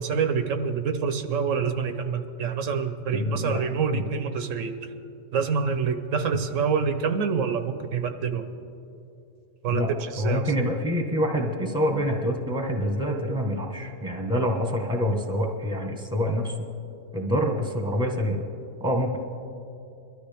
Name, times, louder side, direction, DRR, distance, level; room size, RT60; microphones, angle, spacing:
voice 1, 0.0-4.7 5.3-8.5 9.6-9.8 10.1-10.4, right 6 dB, 75° right, 8 dB, 1.1 m, -26 dB
voice 2, 3.1-4.0 9.7-9.9 10.2-16.6 17.1-18.4 18.8-19.2, equal, 5° right, 2 dB, 1.1 m, -26 dB
23.0 x 12.5 x 3.4 m, 2.7 s
omnidirectional pair, 1.4 m